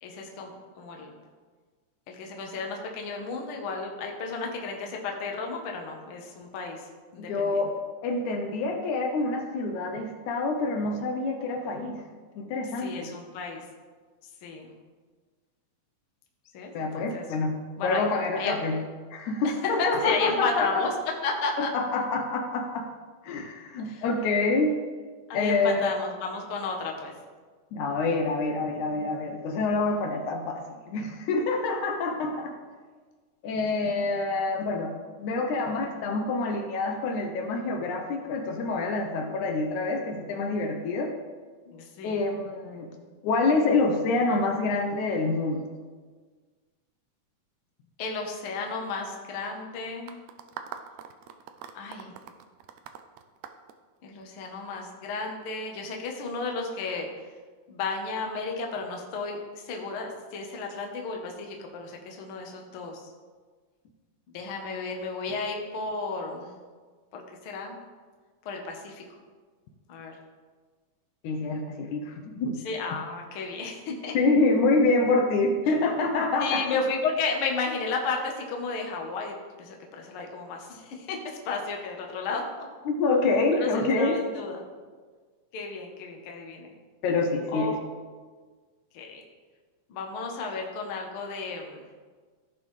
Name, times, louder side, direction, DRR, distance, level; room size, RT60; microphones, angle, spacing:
voice 1, 0.0-1.1 2.1-6.9 7.1-7.6 12.8-13.6 14.4-14.7 16.5-17.2 17.8-18.0 18.3-18.6 19.4-20.9 21.2-21.7 23.8-24.0 25.3-27.1 41.6-42.2 48.0-50.1 51.7-52.1 54.0-57.1 57.7-63.1 64.3-66.5 67.1-67.8 68.4-69.0 69.9-70.2 72.6-74.1 76.4-82.4 83.5-84.6 85.5-86.7 87.5-87.8 88.9-89.2 89.9-91.8, left 4 dB, 60° left, 1 dB, 1.5 m, -33 dB
voice 2, 7.2-7.7 8.0-12.0 12.4-13.1 16.7-17.6 17.8-18.8 19.1-20.8 21.6-22.9 23.2-24.7 25.3-25.9 27.7-32.5 33.4-34.9 35.2-41.1 42.0-42.9 43.2-45.6 71.2-72.6 74.1-76.6 82.9-84.2 87.0-87.8, left 3 dB, 75° left, 4 dB, 2.1 m, -26 dB
sound 1, 50.1-54.5, right 9 dB, 80° right, 1.7 m, -43 dB
15.5 x 5.4 x 3.2 m, 1.5 s
omnidirectional pair, 3.6 m